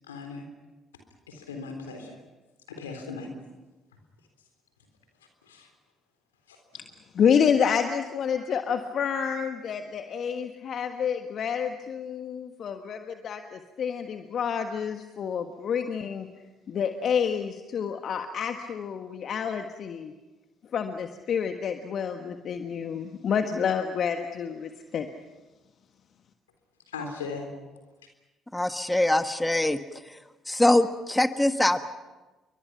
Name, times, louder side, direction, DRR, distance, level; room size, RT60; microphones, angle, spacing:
voice 1, 0.1-0.5 1.3-2.2 2.7-3.3 3.9-4.0 5.4-5.7 6.5-6.8 26.9-27.5, left 4 dB, 85° left, 4 dB, 3.7 m, -38 dB
voice 2, 7.1-16.3 16.7-20.1 20.7-25.1, left 7 dB, 55° left, 6 dB, 1.4 m, -28 dB
voice 3, 28.5-29.8 30.1-30.2 30.5-31.8, left 1 dB, 10° left, 9 dB, 1.5 m, -23 dB
29.5 x 23.5 x 5.8 m, 1.2 s
hypercardioid pair, 50°, 0 cm